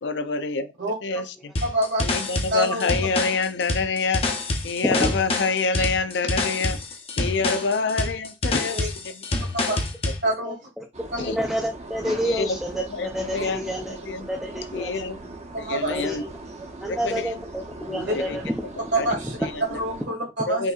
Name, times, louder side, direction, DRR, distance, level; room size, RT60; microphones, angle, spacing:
voice 1, 0.0-0.7 1.0-1.5 2.0-4.2 4.6-6.8 7.2-9.2 11.2-11.4 12.2-14.3 14.7-15.2 15.6-16.2 16.9-17.3 18.1-18.4 18.8-19.1 19.4-19.8 20.5-20.7, left 4 dB, 75° left, 0.5 m, -27 dB
sound 1, 1.6-10.2, left 2 dB, 35° left, 0.8 m, -27 dB
voice 2, 1.6-2.0 2.5-2.9 5.8-5.9 8.7-8.9 9.5-9.8 10.2-10.6 11.1-11.2 15.5-15.9 17.9-18.0 18.9-19.4 19.8-20.6, right 1 dB, 70° right, 2.1 m, -26 dB
voice 3, 10.4-10.9 11.2-13.9 14.3-14.9 15.9-16.3 16.8-18.5, equal, ahead, 0.5 m, -29 dB
sound 2, 10.9-20.1, right 2 dB, 40° right, 0.8 m, -39 dB
5.7 x 2.8 x 2.4 m
head